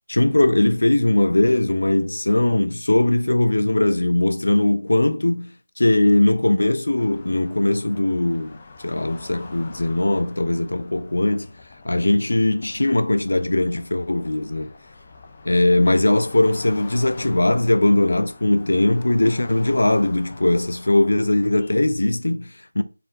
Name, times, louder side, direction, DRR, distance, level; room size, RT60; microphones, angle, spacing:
voice 1, 0.1-5.5 5.8-11.5 11.8-14.7 15.5-22.8, left 1 dB, 75° left, 0.5 m, -20 dB
sound 1, 7.0-21.7, left 3 dB, 25° left, 0.4 m, -44 dB
4.2 x 2.1 x 3.9 m
figure-of-eight pair, 175°, 0 cm